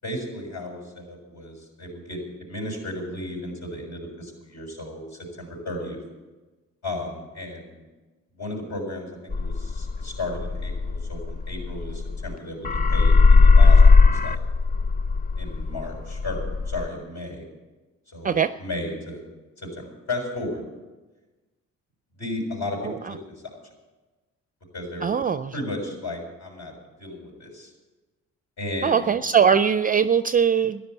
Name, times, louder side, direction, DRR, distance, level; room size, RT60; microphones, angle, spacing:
voice 1, 0.0-6.0 6.8-7.8 8.4-14.4 15.4-17.4 18.1-19.2 19.6-20.6 22.1-23.2 23.6-23.7 24.7-25.2 25.5-26.7 27.0-27.7 28.6-29.1, left 1 dB, 60° left, 0 dB, 6.7 m, -34 dB
sound 1, 9.3-12.3 12.6-16.9, left 4 dB, 30° left, 0.5 m, -18 dB
voice 2, 22.8-23.1 25.0-25.5 28.8-30.8, right 7 dB, 30° right, 12 dB, 0.4 m, -21 dB
13.0 x 11.0 x 8.2 m, 1.2 s
cardioid pair, 90°, 30 cm